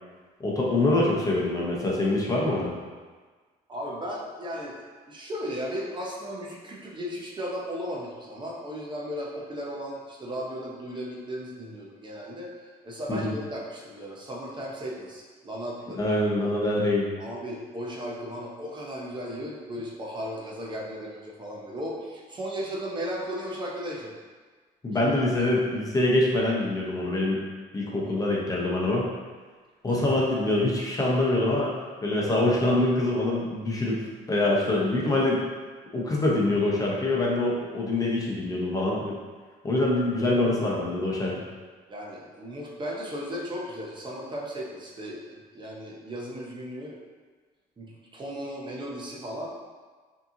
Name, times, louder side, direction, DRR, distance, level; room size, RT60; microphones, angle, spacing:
voice 1, 0.4-2.7 13.1-13.3 16.0-17.1 24.8-27.4 27.7-29.1 29.8-31.7 32.0-34.0 34.3-35.4 35.9-39.2 39.6-41.3, left 2 dB, 20° left, -4 dB, 0.8 m, -24 dB
voice 2, 3.7-4.8 5.1-16.0 16.4-16.5 17.2-24.2 24.9-25.3 25.6-25.7 27.9-28.3 29.9-30.0 32.1-32.2 34.9-35.1 41.9-47.0 47.8-49.5, equal, 25° right, -4 dB, 0.7 m, -36 dB
5.2 x 2.8 x 2.7 m, 1.4 s
cardioid pair, 110°, 17 cm